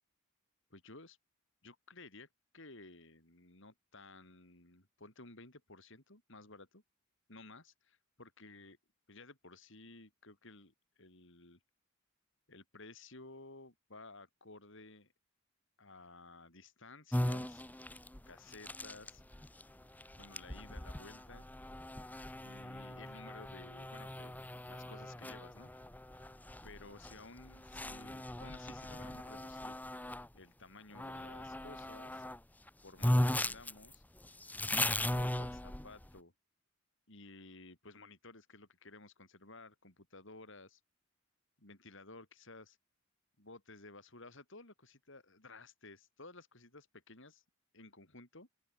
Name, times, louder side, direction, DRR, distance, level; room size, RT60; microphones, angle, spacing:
voice 1, 0.7-1.2 1.6-2.3 2.5-6.8 7.3-8.8 9.1-11.6 12.5-15.1 15.8-17.6 18.3-19.2 20.2-21.5 22.3-25.7 26.6-29.8 30.3-32.2 32.8-34.0 34.8-36.3 37.1-40.8 41.6-42.8 43.4-47.4 47.7-48.5, left 3 dB, 65° left, 5.6 m, -55 dB
sound 1, 17.1-30.3 30.9-32.4 32.7-32.8 33.0-36.1, left 1 dB, 10° left, 1.0 m, -38 dB
open air
head